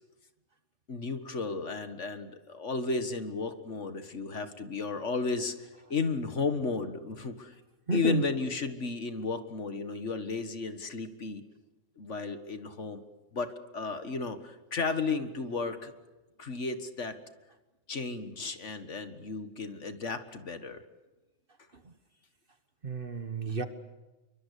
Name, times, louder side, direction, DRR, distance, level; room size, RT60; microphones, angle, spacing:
voice 1, 0.9-7.5 7.9-11.4 12.0-13.0 13.3-15.9 16.4-17.2 17.9-20.8, left 4 dB, 60° left, 9 dB, 1.9 m, -34 dB
voice 2, 7.9-8.2 22.8-23.7, right 3 dB, 40° right, 10 dB, 1.6 m, -30 dB
28.5 x 23.5 x 8.3 m, 1.1 s
omnidirectional pair, 1.4 m